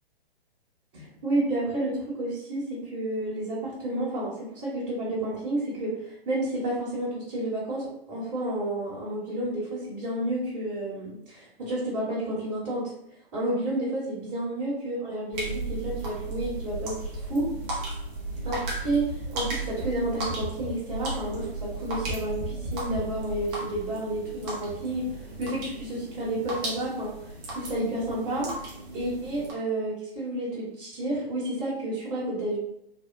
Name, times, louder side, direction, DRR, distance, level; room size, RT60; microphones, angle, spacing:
voice 1, 0.9-12.9 13.3-17.5 18.4-25.1 25.4-27.1 27.5-28.5 28.9-32.6, right 1 dB, 35° right, -10 dB, 1.4 m, -30 dB
sound 1, 15.3-29.5, right 2 dB, 20° right, 0.7 m, -35 dB
3.5 x 2.3 x 2.6 m, 0.79 s
figure-of-eight pair, 125°, 31 cm